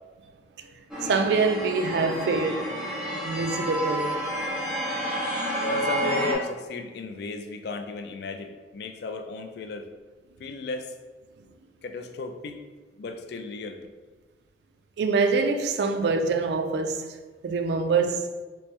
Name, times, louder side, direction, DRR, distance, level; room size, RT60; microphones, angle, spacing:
sound 1, 0.9-6.4, equal, 5° right, 0.7 m, -29 dB
voice 1, 1.0-2.7 3.1-4.1 15.0-17.2 17.4-18.3, right 4 dB, 60° right, 0.3 m, -25 dB
voice 2, 5.7-9.9 10.4-10.9 11.8-12.6 13.0-13.9, left 3 dB, 60° left, 0.3 m, -35 dB
4.3 x 2.1 x 3.1 m
head